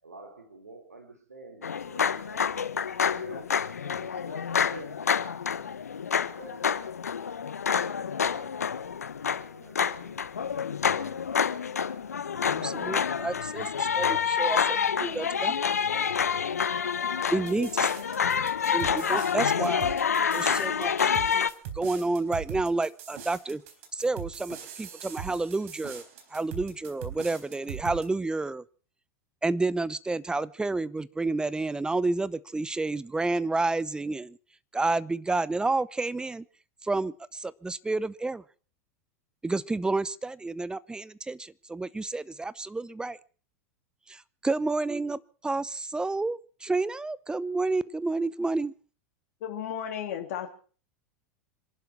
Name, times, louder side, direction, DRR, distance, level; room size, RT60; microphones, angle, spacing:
voice 1, 0.0-2.6 3.1-5.1 6.4-6.8 9.5-10.3, right 2 dB, 85° right, 6 dB, 4.1 m, -48 dB
sound 1, 1.6-21.5, left 7 dB, 80° left, 0.9 m, -28 dB
voice 2, 12.5-15.6 17.3-17.9 18.7-19.9 20.3-21.1 21.7-23.6 23.9-26.0 26.3-28.6 29.4-34.4 34.7-36.4 36.8-38.4 39.4-43.2 44.1-48.7, right 3 dB, 10° right, 19 dB, 0.8 m, -30 dB
sound 2, 17.5-28.1, right 9 dB, 60° right, 4.1 m, -41 dB
voice 3, 49.4-50.5, left 9 dB, 60° left, 3 dB, 3.0 m, -34 dB
26.0 x 11.5 x 4.7 m, 0.40 s
figure-of-eight pair, 90°, 8 cm